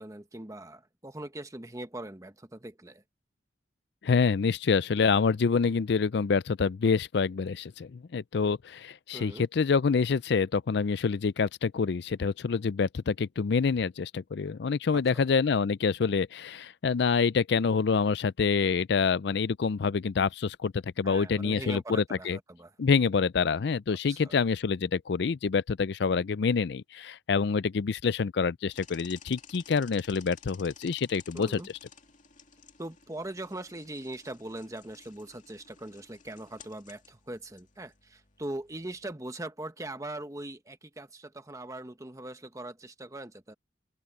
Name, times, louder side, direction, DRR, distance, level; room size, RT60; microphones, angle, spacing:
voice 1, 0.0-3.0 9.1-9.4 14.9-15.2 21.0-22.7 24.1-24.4 31.3-31.7 32.8-43.5, right 1 dB, 15° right, 1.2 m, -41 dB
voice 2, 4.0-22.4 22.8-31.8, left 5 dB, 60° left, 0.4 m, -27 dB
sound 1, 28.7-39.1, left 7 dB, 40° left, 2.5 m, -54 dB
open air
head